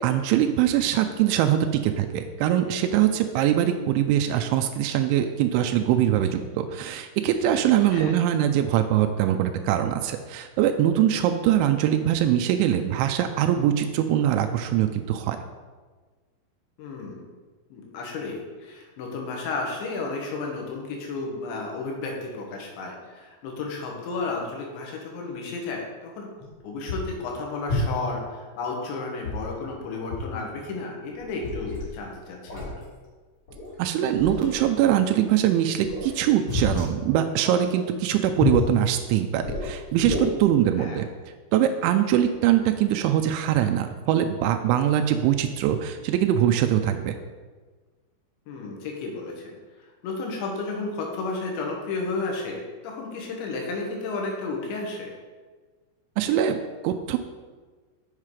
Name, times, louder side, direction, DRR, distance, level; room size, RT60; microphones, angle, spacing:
voice 1, 0.0-15.4 33.8-41.1 41.5-47.2 56.2-57.2, right 11 dB, 90° right, 6 dB, 3.0 m, -22 dB
voice 2, 16.8-17.3 17.7-26.3 26.6-32.7 40.8-41.0 48.5-49.6 50.0-55.1, left 3 dB, 80° left, 0 dB, 3.7 m, -32 dB
sound 1, 26.4-26.5 26.9-27.2 27.7-28.1 29.2-29.8 30.1-30.3 30.6-30.7 31.1-31.9 32.5-32.8 33.5-33.7 34.1-34.7 35.8-36.9 38.4-38.7 39.4-40.2, left 2 dB, 35° left, 3.0 m, -29 dB
7.6 x 7.4 x 4.8 m, 1.4 s
omnidirectional pair, 5.3 m